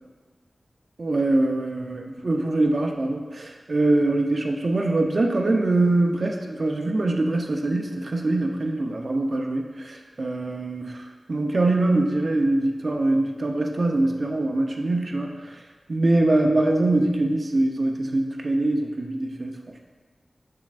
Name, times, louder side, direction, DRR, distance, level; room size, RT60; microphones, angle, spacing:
voice 1, 1.0-15.6 15.9-19.6, right 2 dB, 60° right, 2 dB, 0.7 m, -23 dB
7.3 x 6.6 x 2.5 m, 1.4 s
cardioid pair, 45°, 0 cm